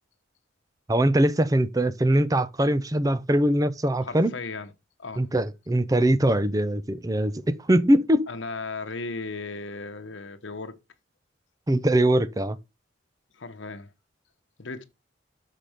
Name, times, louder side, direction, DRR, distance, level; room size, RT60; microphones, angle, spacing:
voice 1, 0.9-4.3 5.2-8.3 11.7-12.6, right 1 dB, 20° right, 0.5 m, -22 dB
voice 2, 4.0-4.7 5.0-5.3 8.3-10.8 13.3-13.9 14.6-14.8, left 3 dB, 80° left, 1.1 m, -36 dB
6.7 x 5.8 x 5.0 m
head